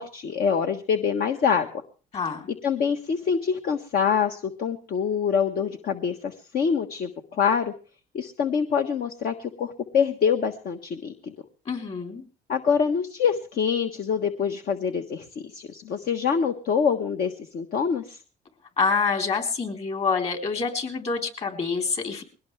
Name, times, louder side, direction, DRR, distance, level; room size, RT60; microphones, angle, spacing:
voice 1, 0.0-1.7 2.6-7.7 8.1-11.3 12.5-18.2, left 6 dB, 60° left, 5 dB, 1.4 m, -25 dB
voice 2, 11.7-12.2 18.8-22.2, left 4 dB, 40° left, 4 dB, 4.1 m, -26 dB
21.5 x 17.5 x 3.4 m, 0.37 s
cardioid pair, 110°, 17 cm